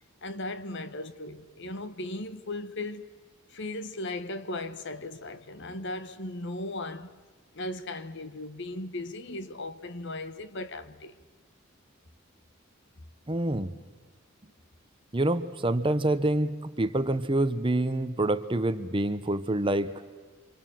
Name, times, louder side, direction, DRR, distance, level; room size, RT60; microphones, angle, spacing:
voice 1, 0.2-3.1 3.5-7.2 7.5-11.1, left 2 dB, 55° left, 1.2 m, -37 dB
voice 2, 13.3-13.7 15.1-19.9, right 1 dB, 25° right, 1.0 m, -27 dB
28.0 x 25.5 x 7.7 m
head